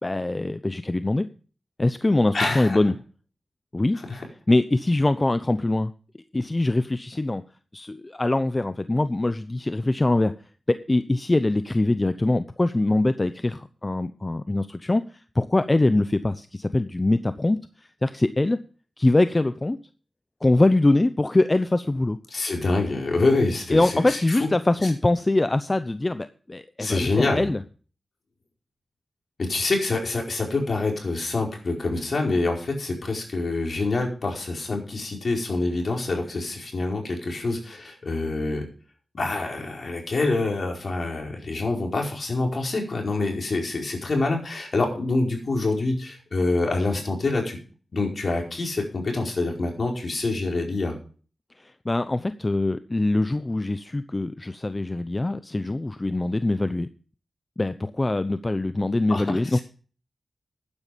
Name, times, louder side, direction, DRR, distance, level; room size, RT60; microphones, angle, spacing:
voice 1, 0.0-1.3 1.8-2.9 3.7-4.0 4.5-5.9 6.3-7.4 7.7-10.3 10.7-18.6 19.0-19.8 20.4-22.2 23.7-27.6 51.6-56.9 57.6-59.6, left 2 dB, 30° left, 12 dB, 0.7 m, -23 dB
voice 2, 2.3-2.8 4.1-4.2 22.3-24.5 24.8-24.9 26.8-27.5 29.4-38.7 39.1-47.6 47.9-50.9 59.1-59.6, left 3 dB, 65° left, 1 dB, 4.8 m, -26 dB
12.0 x 9.9 x 5.2 m, 0.39 s
cardioid pair, 45°, 0 cm